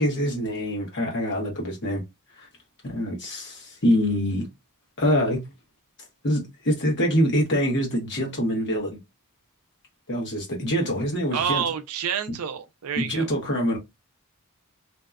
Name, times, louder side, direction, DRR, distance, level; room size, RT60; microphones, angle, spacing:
voice 1, 0.0-2.0 2.4-2.5 2.8-4.5 5.0-5.4 6.2-9.0 10.1-11.6 12.3-12.4 13.0-13.8, equal, 55° left, 1.0 m, -25 dB
voice 2, 11.3-13.3, right 8 dB, 70° right, 0.4 m, -28 dB
2.6 x 2.2 x 2.3 m
head